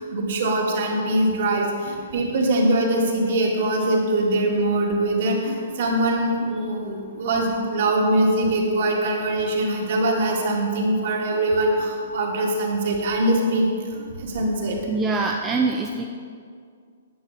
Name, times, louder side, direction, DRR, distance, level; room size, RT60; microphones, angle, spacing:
voice 1, 0.0-13.7 14.0-14.8, right 1 dB, 45° right, 0 dB, 2.0 m, -22 dB
voice 2, 14.9-16.1, right 4 dB, 10° right, 1 dB, 0.4 m, -24 dB
10.0 x 7.0 x 6.6 m, 2.2 s
hypercardioid pair, 175°, 0 cm